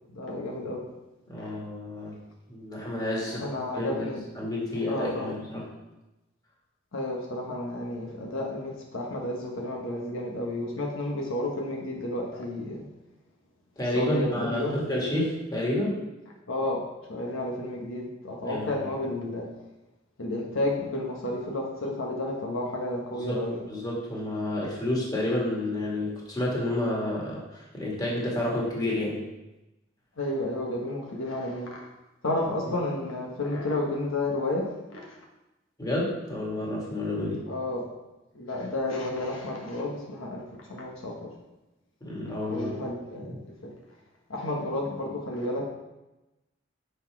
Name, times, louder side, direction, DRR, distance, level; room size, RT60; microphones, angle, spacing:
voice 1, 0.1-0.8 1.4-1.5 3.2-4.2 4.9-5.4 6.9-12.9 13.9-14.8 16.5-16.8 17.1-19.5 20.2-23.7 30.2-31.8 32.2-35.2 37.4-37.8 38.3-41.3 42.2-43.7 44.3-45.7, left 1 dB, 80° left, -2 dB, 1.3 m, -31 dB
voice 2, 1.3-2.2 2.5-3.4 3.7-4.1 4.4-5.6 13.8-16.0 18.5-18.7 23.1-23.4 23.7-29.2 35.8-37.4 42.0-42.7 43.2-43.3, left 1 dB, 20° left, -4 dB, 2.0 m, -30 dB
6.1 x 5.6 x 4.7 m, 1.0 s
head